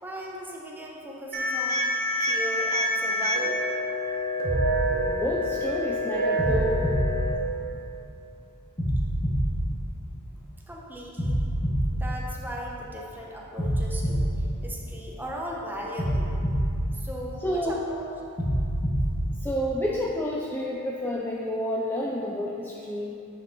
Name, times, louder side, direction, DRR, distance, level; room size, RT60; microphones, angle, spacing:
voice 1, 0.0-1.8 2.2-3.6 10.4-11.4 11.9-16.3 16.9-18.0, equal, 10° right, -2 dB, 0.8 m, -38 dB
sound 1, 1.3-7.3, equal, 40° right, 1.1 m, -27 dB
sound 2, 4.4-5.8 6.4-8.1 8.8-10.6 11.2-13.0 13.6-15.4 16.0-17.7 18.4-19.8, equal, 25° left, 1.2 m, -28 dB
voice 2, 5.1-6.9 17.4-17.8 19.4-23.2, equal, 10° left, -3 dB, 0.4 m, -29 dB
8.6 x 4.9 x 3.8 m, 2.7 s
head